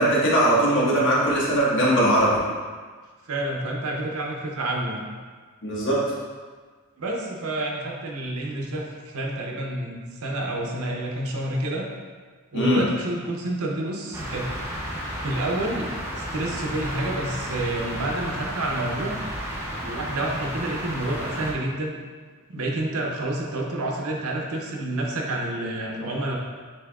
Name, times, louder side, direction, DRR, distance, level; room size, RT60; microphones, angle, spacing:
voice 1, 0.0-2.4 5.6-6.0 12.5-12.8, right 1 dB, 55° left, -6 dB, 1.2 m, -20 dB
voice 2, 3.3-5.0 7.0-11.9 12.5-14.5 15.2-15.9 16.1-19.2 19.7-21.9 22.5-26.4, right 1 dB, 70° right, 0 dB, 0.7 m, -29 dB
sound 1, 14.1-21.5, equal, 10° right, 0.6 m, -32 dB
6.9 x 2.8 x 2.3 m, 1.5 s
head